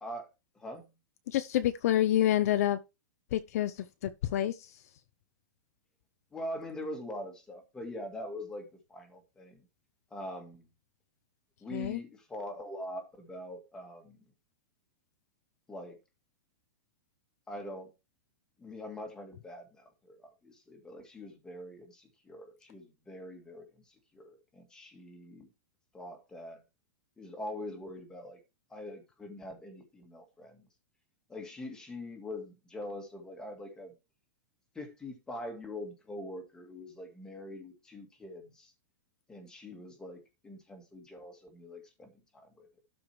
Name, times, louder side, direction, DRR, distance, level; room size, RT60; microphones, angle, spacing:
voice 1, 0.5-0.9 6.3-9.7 10.1-10.7 11.6-14.2 15.7-16.0 17.5-17.9 18.6-25.5 25.9-26.6 27.2-28.4 28.7-30.7 31.3-33.9 34.7-38.7 39.3-42.8, left 1 dB, 5° left, 2.1 m, -43 dB
voice 2, 1.3-2.8 3.3-4.6 11.7-12.0, left 12 dB, 50° left, 0.7 m, -28 dB
12.5 x 5.1 x 4.7 m
supercardioid pair, 175°, 11 cm